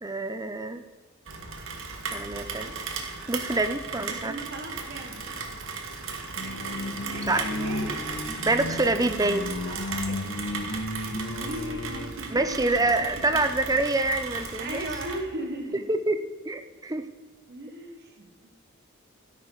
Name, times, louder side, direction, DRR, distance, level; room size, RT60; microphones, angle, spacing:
voice 1, 0.0-0.8 2.1-2.7 3.3-4.3 7.3-7.4 8.4-9.5 12.3-14.9 15.9-16.2 16.4-17.1, right 2 dB, 20° right, 9 dB, 0.7 m, -26 dB
Rain, 1.3-15.2, right 4 dB, 80° right, 1.7 m, -36 dB
voice 2, 3.9-5.3 7.1-8.0 9.6-10.2 11.4-13.4 14.6-15.8 17.5-18.5, right 1 dB, 55° right, 1 dB, 2.5 m, -37 dB
sound 1, 6.4-12.2, left 1 dB, 85° left, 1.7 m, -34 dB
13.0 x 11.0 x 4.0 m, 1.4 s
head